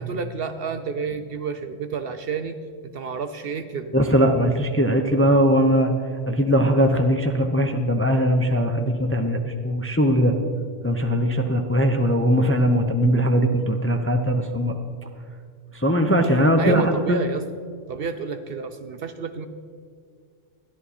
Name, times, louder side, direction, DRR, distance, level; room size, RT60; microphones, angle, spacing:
voice 1, 0.0-3.9 16.6-17.4 17.9-19.5, right 5 dB, 60° right, 9 dB, 0.7 m, -30 dB
voice 2, 3.9-5.9 6.3-10.3 10.8-14.8 15.7-17.2, equal, 15° left, 4 dB, 0.5 m, -20 dB
14.0 x 11.0 x 4.2 m, 2.2 s
omnidirectional pair, 1.3 m